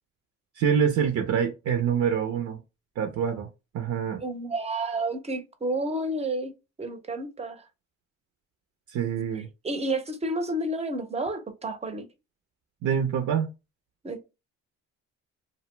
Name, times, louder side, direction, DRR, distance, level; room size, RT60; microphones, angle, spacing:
voice 1, 0.5-2.6 3.0-4.2 8.9-9.5 12.8-13.5, right 7 dB, 70° right, 0.5 m, -26 dB
voice 2, 4.2-6.5 6.8-7.7 9.4-12.1 14.0-14.2, right 2 dB, 20° right, 0.6 m, -30 dB
2.5 x 2.0 x 3.1 m
cardioid pair, 90°, 30 cm